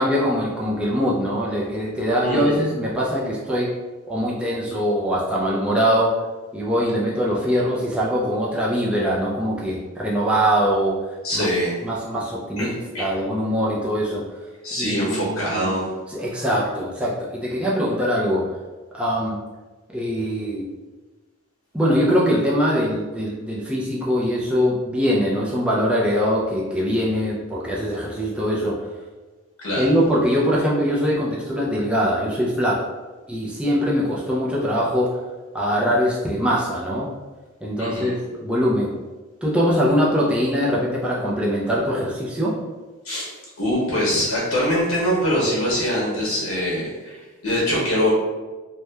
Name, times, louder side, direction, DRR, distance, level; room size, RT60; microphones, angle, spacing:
voice 1, 0.0-3.7 4.1-6.1 6.5-11.0 11.3-11.5 11.8-14.2 14.7-18.5 18.9-19.4 19.9-20.7 21.7-28.9 29.8-32.8 33.3-35.2 35.5-37.1 37.6-39.0 39.4-42.5, equal, 5° right, -5 dB, 0.3 m, -22 dB
voice 2, 2.2-2.6 11.2-11.7 12.6-12.7 12.9-13.1 14.6-15.9 29.6-29.9 37.8-38.1 43.0-43.3 43.6-48.1, equal, 80° left, -6 dB, 0.8 m, -23 dB
2.9 x 2.1 x 2.2 m, 1.3 s
head